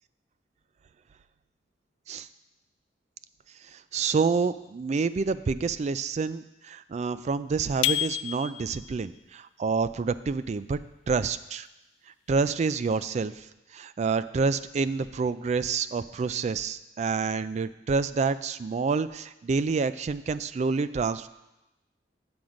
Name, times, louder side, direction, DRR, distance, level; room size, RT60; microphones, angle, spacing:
voice 1, 3.7-10.8 11.1-11.7 12.3-13.5 13.7-21.3, right 4 dB, 40° right, 14 dB, 0.3 m, -28 dB
sound 1, 7.8-8.9, left 13 dB, 90° left, 0.3 m, -28 dB
7.8 x 7.2 x 5.0 m, 0.97 s
head